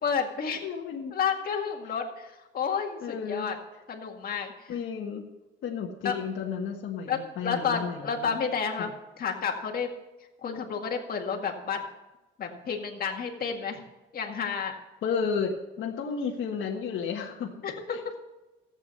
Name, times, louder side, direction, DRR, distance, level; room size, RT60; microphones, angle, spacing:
voice 1, 0.0-0.6 1.1-3.6 3.9-4.7 6.0-6.1 7.1-8.9 9.2-9.9 10.4-11.8 12.4-13.8 14.1-14.7 17.6-18.1, left 6 dB, 45° left, 2 dB, 2.0 m, -31 dB
voice 2, 0.6-1.2 2.9-3.5 4.7-5.3 5.6-8.4 8.8-8.9 15.0-17.6 17.9-18.2, left 6 dB, 65° left, -1 dB, 1.5 m, -33 dB
14.5 x 8.3 x 5.6 m, 1.1 s
cardioid pair, 140°, 21 cm